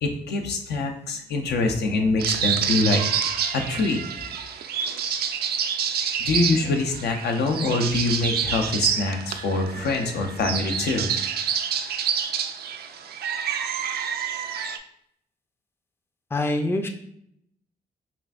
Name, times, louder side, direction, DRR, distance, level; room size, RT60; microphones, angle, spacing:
voice 1, 0.0-3.0 3.5-4.0 6.2-11.1, left 3 dB, 85° left, 3 dB, 0.6 m, -24 dB
sound 1, 2.2-14.8, right 7 dB, 70° right, 0.4 m, -28 dB
voice 2, 16.3-16.9, left 2 dB, 15° left, 5 dB, 0.4 m, -24 dB
5.5 x 2.6 x 2.4 m, 0.71 s
cardioid pair, 100°, 17 cm